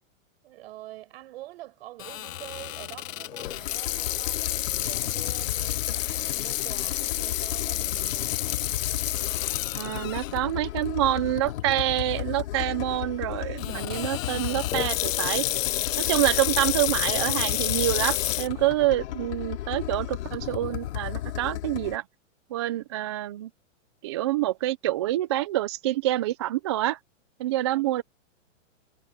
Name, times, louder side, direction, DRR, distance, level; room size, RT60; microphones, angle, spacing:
voice 1, 0.4-8.5 15.9-16.2 27.7-27.9, right 16 dB, 50° right, 5.2 m, -45 dB
Water tap faucet / Sink (filling or washing), 2.0-10.4 10.9-11.0 11.7-12.0 13.6-18.5, left 13 dB, 85° left, 0.7 m, -30 dB
sound 1, 3.4-22.0, left 13 dB, 60° left, 4.7 m, -34 dB
voice 2, 9.7-15.4 16.1-22.0 22.5-23.5 24.0-27.0 27.4-28.0, right 15 dB, 25° right, 0.4 m, -27 dB
hypercardioid pair, 155°, 38 cm